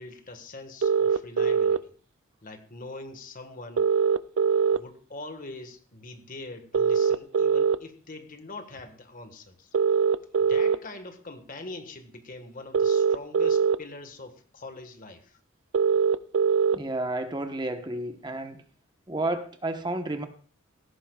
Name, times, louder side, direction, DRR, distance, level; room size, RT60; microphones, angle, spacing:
voice 1, 0.0-1.9 2.4-3.9 4.7-9.7 10.4-15.4, left 2 dB, 40° left, 7 dB, 1.5 m, -43 dB
sound 1, 0.8-1.8 3.8-4.8 6.7-7.8 9.7-10.8 12.7-13.8 15.7-16.8, right 6 dB, 65° right, 0.5 m, -22 dB
voice 2, 16.7-18.6 19.1-20.2, right 2 dB, 20° right, 7 dB, 1.0 m, -31 dB
17.0 x 14.0 x 2.4 m, 0.41 s
head